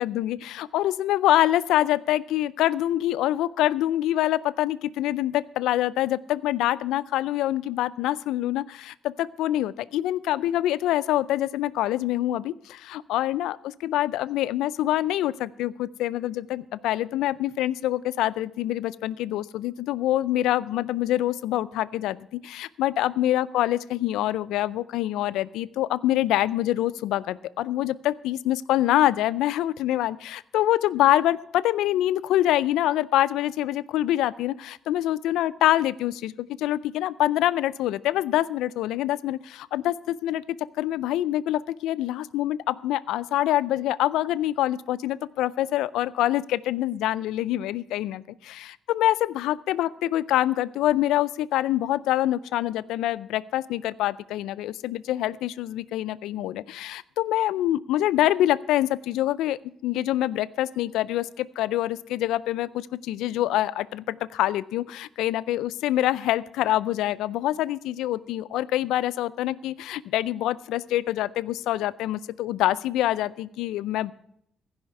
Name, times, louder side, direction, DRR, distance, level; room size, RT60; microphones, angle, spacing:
voice 1, 0.0-74.1, left 14 dB, 90° left, 17 dB, 0.4 m, -25 dB
15.0 x 5.6 x 8.0 m, 0.71 s
cardioid pair, 90°, 0 cm